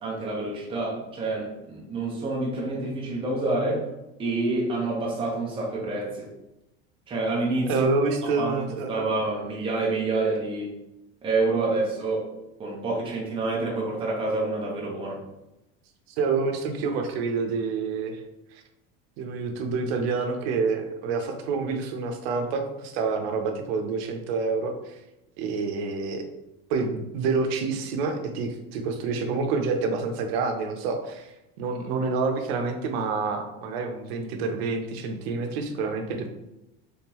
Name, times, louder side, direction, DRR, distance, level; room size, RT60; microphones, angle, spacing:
voice 1, 0.0-3.9 4.2-6.3 7.1-7.9 8.4-10.7 11.2-12.3 12.6-15.2, right 2 dB, 15° right, -3 dB, 0.8 m, -28 dB
voice 2, 7.7-8.9 16.2-18.2 18.5-18.6 19.2-25.0 25.4-26.2 26.7-36.3, right 4 dB, 85° right, 5 dB, 0.8 m, -28 dB
3.6 x 3.5 x 2.9 m, 0.92 s
cardioid pair, 155°, 30 cm